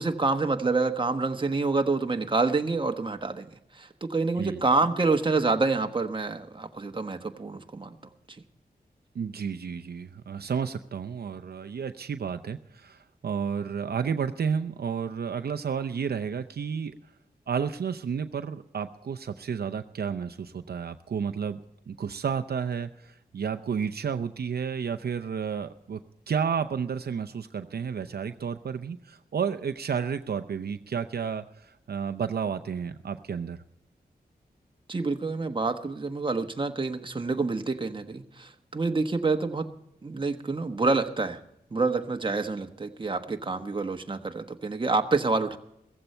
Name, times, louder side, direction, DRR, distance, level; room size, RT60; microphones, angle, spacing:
voice 1, 0.0-3.5 3.7-8.0 34.9-39.7 40.0-41.4 41.7-45.6, right 3 dB, 30° right, 5 dB, 1.1 m, -27 dB
voice 2, 9.1-16.9 17.5-21.6 21.9-26.0 26.3-33.6, right 6 dB, 75° right, 8 dB, 0.7 m, -31 dB
15.5 x 15.0 x 4.4 m, 0.81 s
wide cardioid pair, 105°, 16 cm